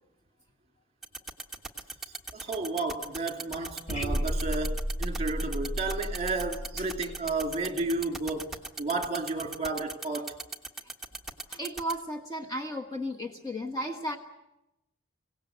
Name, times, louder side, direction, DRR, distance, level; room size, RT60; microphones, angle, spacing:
sound 1, 1.0-11.9, right 3 dB, ahead, 1.3 m, -37 dB
voice 1, 2.3-10.4, right 3 dB, 30° right, 2.9 m, -32 dB
sound 2, 3.9-8.0, equal, 35° left, 2.8 m, -33 dB
voice 2, 11.5-14.2, equal, 15° left, 1.3 m, -34 dB
25.5 x 17.5 x 8.1 m
head